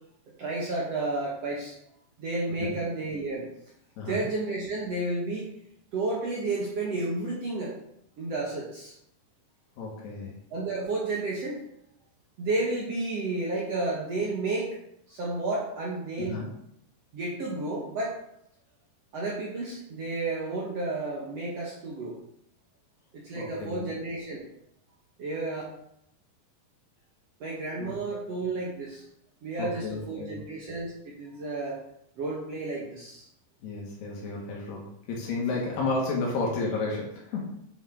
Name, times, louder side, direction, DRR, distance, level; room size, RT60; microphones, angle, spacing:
voice 1, 0.4-1.7 2.2-3.5 4.0-5.5 5.9-7.7 8.2-8.9 10.5-11.6 12.4-14.8 15.1-16.5 17.1-18.2 19.1-22.2 23.1-24.4 25.2-25.6 27.4-29.0 29.4-31.8 32.2-33.2 35.5-35.6, right 2 dB, 60° right, -5 dB, 1.6 m, -31 dB
voice 2, 9.8-10.4 16.2-16.5 23.4-23.9 27.8-28.2 29.6-30.4 33.6-37.5, left 3 dB, 80° left, -2 dB, 3.6 m, -32 dB
8.2 x 5.8 x 3.8 m, 0.75 s
omnidirectional pair, 4.7 m